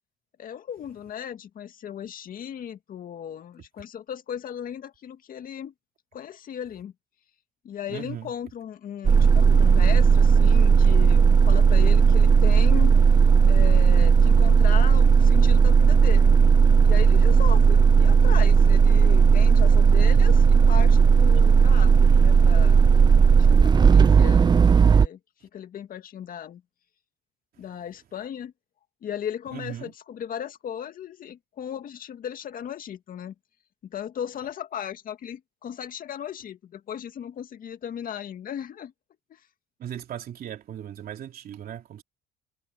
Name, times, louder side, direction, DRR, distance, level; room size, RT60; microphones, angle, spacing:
voice 1, 0.4-5.7 6.1-6.9 7.6-12.9 13.4-16.3 16.8-22.8 23.5-24.5 24.8-25.2 25.5-26.6 27.6-28.5 29.0-33.3 33.9-38.9 39.3-39.4, left 9 dB, 50° left, 2.1 m, -36 dB
voice 2, 7.9-8.3 21.3-21.4 25.4-25.5 27.5-27.7 29.5-29.9 39.8-42.0, right 10 dB, 55° right, 3.3 m, -38 dB
sound 1, 9.0-25.1, right 6 dB, 25° right, 0.5 m, -16 dB
cardioid pair, 105°, 19 cm